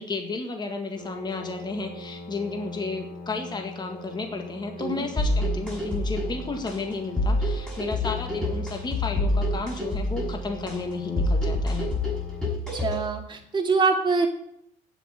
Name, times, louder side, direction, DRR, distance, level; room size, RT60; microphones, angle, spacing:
voice 1, 0.0-11.9, left 3 dB, 25° left, 4 dB, 1.8 m, -32 dB
sound 1, 0.9-12.5, left 2 dB, 55° left, 4.7 m, -42 dB
sound 2, 5.2-13.2, left 1 dB, 5° left, 6.3 m, -27 dB
voice 2, 12.7-14.3, right 4 dB, 30° right, 2 dB, 2.5 m, -24 dB
9.2 x 8.0 x 8.6 m, 0.73 s
cardioid pair, 110°, 17 cm